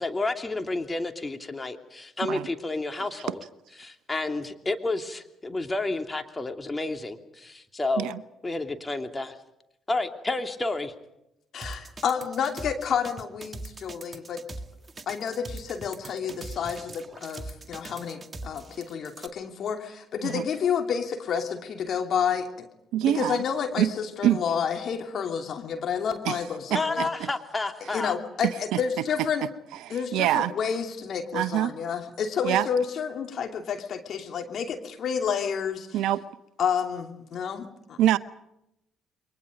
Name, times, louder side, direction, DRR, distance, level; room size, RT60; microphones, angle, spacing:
voice 1, 0.0-3.4 3.8-8.1 8.4-9.4 9.9-10.9 26.7-28.1, left 2 dB, 25° left, 2.9 m, -30 dB
voice 2, 11.5-14.4 15.1-22.7 23.0-27.1 27.9-29.4 29.9-36.0 36.6-38.0, left 7 dB, 60° left, 2.9 m, -30 dB
sound 1, 11.6-19.3, right 2 dB, 30° right, 1.9 m, -41 dB
voice 3, 22.9-23.4 23.8-23.9 24.2-24.4 26.3-26.4 26.7-27.1 28.7-28.8 29.2-29.3 29.8-30.5 31.3-31.7 32.4-32.7 35.9-36.2 38.0-38.2, right 13 dB, 70° right, 0.8 m, -24 dB
29.0 x 23.0 x 5.2 m
hypercardioid pair, 45°, 0 cm